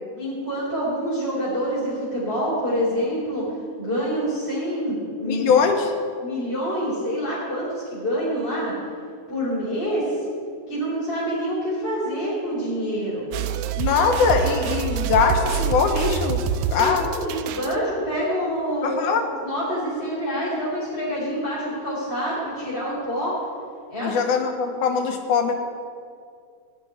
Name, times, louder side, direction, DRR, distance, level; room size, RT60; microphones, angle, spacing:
voice 1, 0.1-3.5 3.8-5.4 6.2-8.7 9.3-10.1 10.7-13.2 16.8-19.0 19.4-23.4 23.9-24.4, equal, 20° left, -9 dB, 4.1 m, -26 dB
voice 2, 5.2-5.9 13.8-16.4 16.7-17.1 18.8-19.2 24.0-25.5, left 6 dB, 85° left, 4 dB, 2.6 m, -21 dB
sound 1, 13.3-17.8, right 7 dB, 85° right, 2.0 m, -26 dB
17.0 x 6.1 x 9.9 m, 2.3 s
omnidirectional pair, 3.4 m